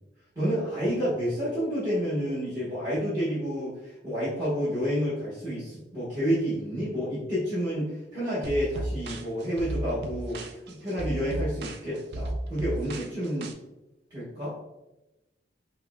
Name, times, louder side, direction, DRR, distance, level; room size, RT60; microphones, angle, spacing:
voice 1, 0.3-13.5 14.1-14.6, equal, 20° right, -14 dB, 1.1 m, -29 dB
sound 1, 8.4-13.5, right 1 dB, 60° right, 0.3 m, -34 dB
5.2 x 2.1 x 2.3 m, 0.98 s
head